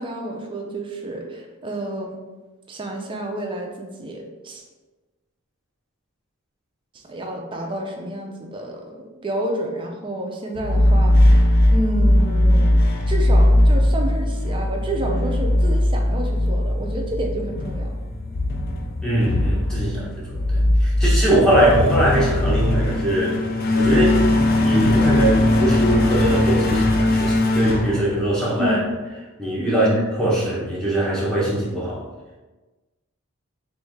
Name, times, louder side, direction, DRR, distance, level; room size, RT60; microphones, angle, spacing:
voice 1, 0.0-2.2 2.7-4.6 6.9-12.8 13.1-17.9 28.6-28.8 29.7-30.0, right 1 dB, 20° right, 1 dB, 0.4 m, -29 dB
sound 1, 10.6-28.7, left 1 dB, 40° left, 0.4 m, -19 dB
voice 2, 19.0-24.2 24.6-28.8 29.4-29.9 30.2-32.0, right 1 dB, 5° left, -7 dB, 0.9 m, -21 dB
3.2 x 2.6 x 3.5 m, 1.2 s
head